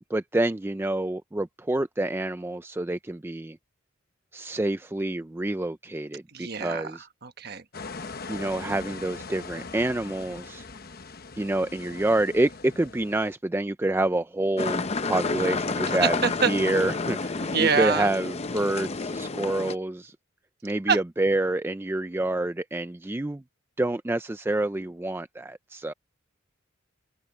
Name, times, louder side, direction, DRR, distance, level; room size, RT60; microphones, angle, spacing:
voice 1, 0.1-3.6 4.3-7.0 8.3-10.6 11.4-16.2 16.5-20.1 20.6-23.4 23.8-25.9, right 2 dB, 10° right, 0.3 m, -27 dB
voice 2, 6.3-7.6 15.9-16.5 17.4-18.1 20.9-21.0, right 5 dB, 50° right, 1.2 m, -26 dB
sound 1, 7.7-13.3, left 4 dB, 45° left, 1.0 m, -41 dB
sound 2, 14.6-19.8, left 4 dB, 30° left, 0.6 m, -30 dB
open air
head